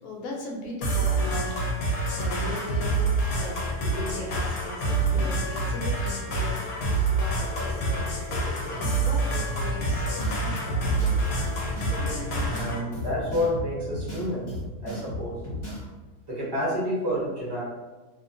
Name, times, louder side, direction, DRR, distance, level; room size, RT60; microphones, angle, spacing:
voice 1, 0.0-8.3 8.6-10.9, left 1 dB, 70° left, -2 dB, 1.0 m, -38 dB
sound 1, 0.8-12.8, right 2 dB, 90° left, 1.2 m, -27 dB
sound 2, 3.8-14.3, left 1 dB, 40° right, 0.4 m, -41 dB
sound 3, 9.8-15.8, left 1 dB, 40° left, 0.4 m, -35 dB
voice 2, 12.5-14.5 14.8-15.4 16.3-17.6, equal, 20° right, -8 dB, 0.7 m, -29 dB
2.8 x 2.1 x 2.5 m, 1.2 s
omnidirectional pair, 1.7 m